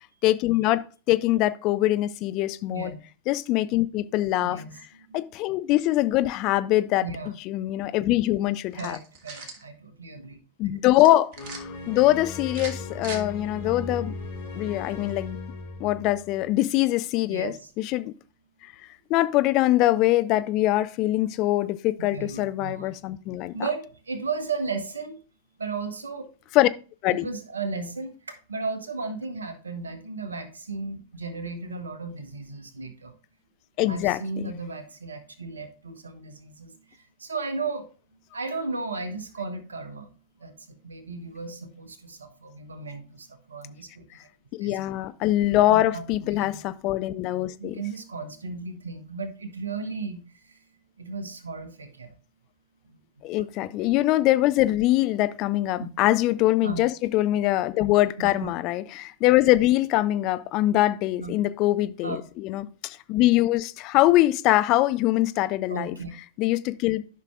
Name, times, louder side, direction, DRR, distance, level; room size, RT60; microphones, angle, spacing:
voice 1, 0.2-2.9 3.3-4.6 5.1-7.1 7.5-9.0 10.6-14.1 14.5-15.4 15.8-18.1 19.1-23.5 26.5-26.7 27.0-27.3 33.8-34.5 44.5-47.8 53.2-65.9 66.4-67.0, left 15 dB, 40° left, 0.4 m, -23 dB
voice 2, 4.4-5.1 7.0-7.3 8.8-10.4 17.3-17.7 22.0-22.9 23.5-25.2 25.6-26.2 27.2-33.1 33.9-36.8 37.2-37.9 38.3-40.1 40.4-44.0 44.6-44.8 45.7-46.0 46.3-46.6 47.6-50.6 51.0-52.1 52.8-53.0 55.7-55.9 56.6-56.9 58.2-58.5 61.2-61.3 62.0-62.2 65.7-66.1, right 4 dB, 75° right, 1.1 m, -35 dB
sound 1, 8.7-9.6 11.0-11.6 12.5-13.2, right 4 dB, 45° right, 1.4 m, -40 dB
sound 2, 11.4-16.5, left 3 dB, 70° left, 4.1 m, -37 dB
12.0 x 5.7 x 2.4 m
figure-of-eight pair, 90°, 0 cm